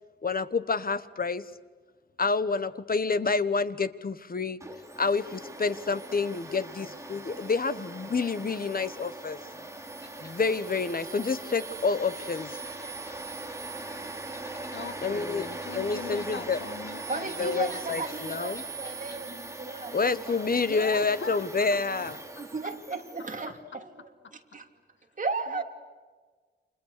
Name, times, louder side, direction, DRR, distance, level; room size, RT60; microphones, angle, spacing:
voice 1, 0.2-1.4 2.2-4.6 5.0-9.4 10.2-12.6 15.0-15.5 15.7-16.6 17.4-18.6 19.9-22.2, left 4 dB, 45° left, 13 dB, 1.2 m, -28 dB
Domestic sounds home sounds, 4.6-23.5, right 2 dB, 15° right, 3.0 m, -41 dB
sound 1, 10.0-21.9, left 1 dB, 15° left, 3.7 m, -54 dB
voice 2, 14.7-18.0 20.7-21.8 22.3-22.4 23.4-23.5 25.5-25.6, left 5 dB, 70° left, 10 dB, 1.6 m, -40 dB
voice 3, 17.1-20.4 22.0-23.9 24.3-24.7 25.2-25.6, right 3 dB, 40° right, 3 dB, 3.1 m, -35 dB
29.5 x 27.5 x 6.8 m, 1.4 s
wide cardioid pair, 120°, 20 cm